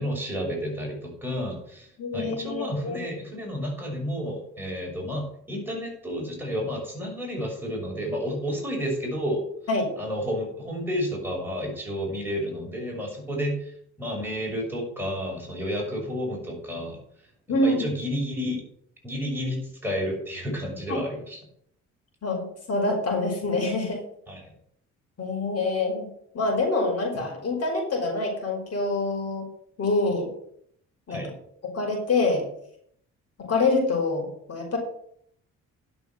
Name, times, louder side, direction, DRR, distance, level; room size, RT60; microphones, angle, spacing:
voice 1, 0.0-9.4 10.0-17.0 17.5-18.6 19.0-21.4 24.3-24.5 31.1-31.4, equal, 5° right, -2 dB, 6.4 m, -31 dB
voice 2, 2.0-3.0 9.7-9.9 17.5-17.9 20.9-21.0 22.2-24.0 25.2-26.1 26.3-29.5 29.8-30.3 31.1-31.2 31.6-32.4 33.4-34.8, left 2 dB, 55° left, 1 dB, 5.1 m, -26 dB
11.0 x 7.0 x 7.9 m, 0.68 s
cardioid pair, 90°, 30 cm